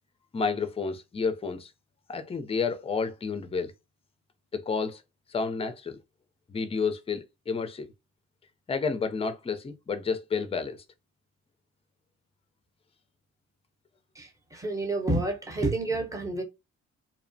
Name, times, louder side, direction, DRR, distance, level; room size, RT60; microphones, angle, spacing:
voice 1, 0.3-1.7 2.1-3.7 4.5-5.0 5.3-6.0 6.5-7.9 8.7-10.8, left 5 dB, 20° left, 0.4 m, -30 dB
voice 2, 14.1-16.4, right 2 dB, 10° right, 0.7 m, -29 dB
2.8 x 2.0 x 2.5 m
cardioid pair, 90°, 30 cm